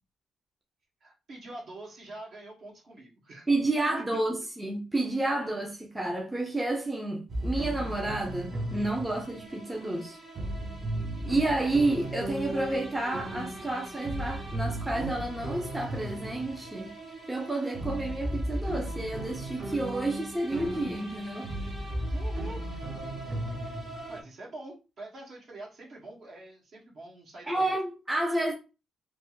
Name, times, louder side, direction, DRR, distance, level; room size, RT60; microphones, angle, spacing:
voice 1, 1.0-3.5 22.1-22.6 24.1-27.7, right 2 dB, 55° right, 1.5 m, -45 dB
voice 2, 3.5-10.2 11.2-16.9 17.3-21.5 27.5-28.5, right 2 dB, 15° right, 0.5 m, -30 dB
sound 1, 7.3-24.2, right 1 dB, 35° right, 0.8 m, -36 dB
3.2 x 2.1 x 3.0 m
cardioid pair, 90°, 0 cm